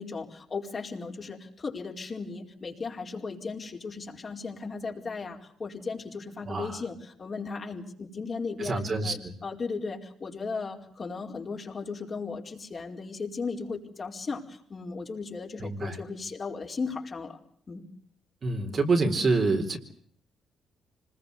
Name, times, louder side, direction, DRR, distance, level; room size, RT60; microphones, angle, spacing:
voice 1, 0.0-17.4 17.7-17.8, left 4 dB, 40° left, 1 dB, 4.6 m, -36 dB
voice 2, 6.5-6.8 8.6-9.3 15.6-16.0 18.4-19.8, right 3 dB, 45° right, 4 dB, 4.1 m, -27 dB
26.0 x 20.5 x 8.1 m, 0.63 s
cardioid pair, 90°, 0 cm